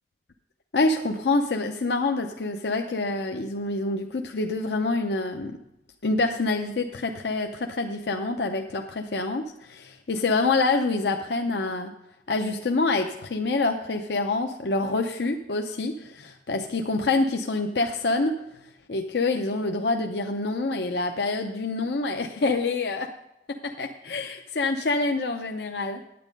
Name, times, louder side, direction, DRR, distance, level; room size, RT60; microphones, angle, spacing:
voice 1, 0.7-5.6 6.0-11.9 12.3-18.4 18.9-23.1 23.6-26.0, left 3 dB, 70° left, 3 dB, 0.7 m, -26 dB
9.5 x 9.1 x 5.2 m, 0.85 s
head